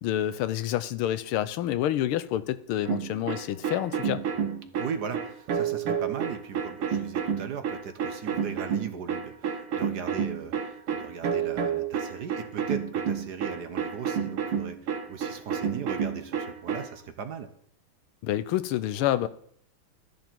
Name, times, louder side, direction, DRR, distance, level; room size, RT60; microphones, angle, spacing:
voice 1, 0.0-4.2 18.2-19.3, left 12 dB, 80° left, 1.5 m, -28 dB
sound 1, 2.8-16.9, right 7 dB, 85° right, 2.3 m, -30 dB
voice 2, 4.8-17.5, right 6 dB, 60° right, 1.3 m, -38 dB
13.0 x 10.5 x 4.5 m
omnidirectional pair, 2.4 m